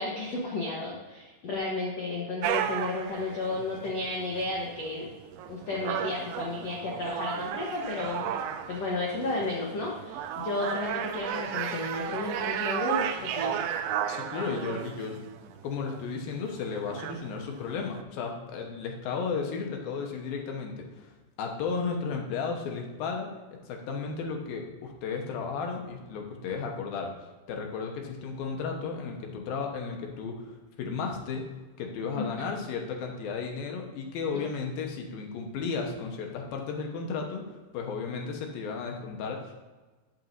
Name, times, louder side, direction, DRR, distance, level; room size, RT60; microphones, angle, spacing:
voice 1, 0.0-5.1 5.5-8.4 8.7-13.7 32.1-32.2, left 2 dB, 90° left, -3 dB, 1.4 m, -33 dB
sound 1, 2.4-18.0, right 9 dB, 80° right, 2.4 m, -34 dB
voice 2, 14.1-15.2 15.6-21.1 21.4-23.3 23.7-27.1 27.5-31.4 31.8-39.5, left 5 dB, 70° left, 2 dB, 2.7 m, -34 dB
10.5 x 9.0 x 2.7 m, 1.2 s
omnidirectional pair, 5.0 m